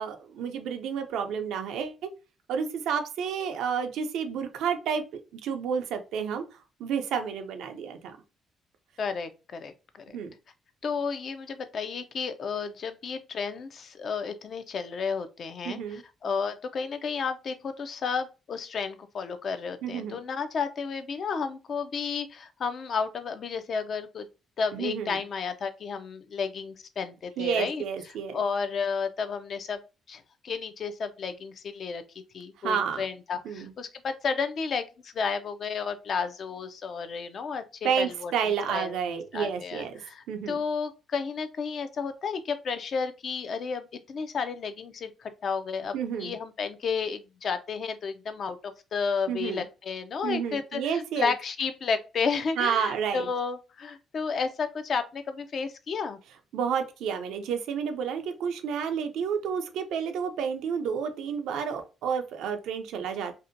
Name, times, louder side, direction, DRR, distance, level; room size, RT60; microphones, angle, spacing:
voice 1, 0.0-2.1 2.5-5.0 5.4-6.4 6.8-8.2 10.1-10.3 15.6-16.0 19.8-20.2 24.7-25.2 27.4-28.4 32.6-33.0 33.4-33.7 37.8-40.0 40.3-40.6 45.9-46.4 49.3-49.7 50.2-51.3 52.6-53.3 56.5-63.3, right 7 dB, 85° right, 0.4 m, -30 dB
voice 2, 9.0-10.0 10.8-24.3 24.6-27.8 28.3-29.8 30.1-32.0 32.3-38.3 38.7-39.0 39.3-45.9 46.2-56.2, left 5 dB, 55° left, 0.4 m, -32 dB
2.6 x 2.1 x 2.5 m
cardioid pair, 90°, 0 cm